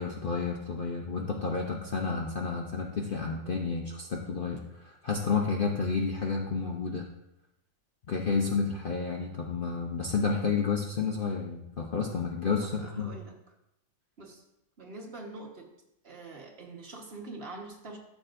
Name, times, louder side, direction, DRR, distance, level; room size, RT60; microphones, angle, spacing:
voice 1, 0.0-7.0 8.1-13.1, left 5 dB, 90° left, 1 dB, 0.4 m, -30 dB
voice 2, 12.8-13.3 14.2-14.4 14.8-15.7 16.0-18.0, right 2 dB, 35° right, -1 dB, 1.4 m, -44 dB
13.0 x 7.3 x 2.6 m, 0.84 s
omnidirectional pair, 2.0 m